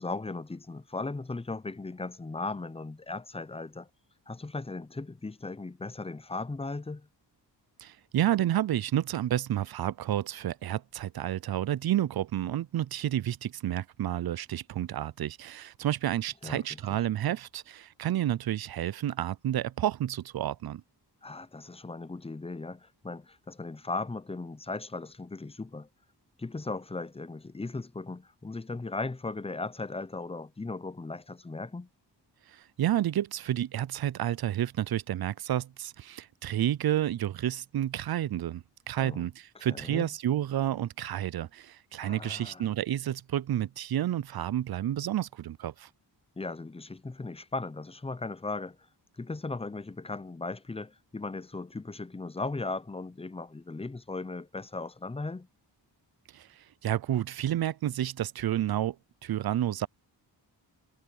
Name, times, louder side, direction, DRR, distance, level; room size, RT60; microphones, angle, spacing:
voice 1, 0.0-3.9 4.3-7.1 16.4-17.0 21.2-25.9 26.4-31.9 39.0-39.2 39.6-40.1 42.0-42.7 46.4-48.8 49.2-55.5, left 3 dB, 15° left, 0.5 m, -37 dB
voice 2, 7.8-20.8 32.5-45.9 56.3-59.0 59.2-59.9, right 12 dB, 55° right, 0.5 m, -30 dB
wide cardioid pair, 80°, 44 cm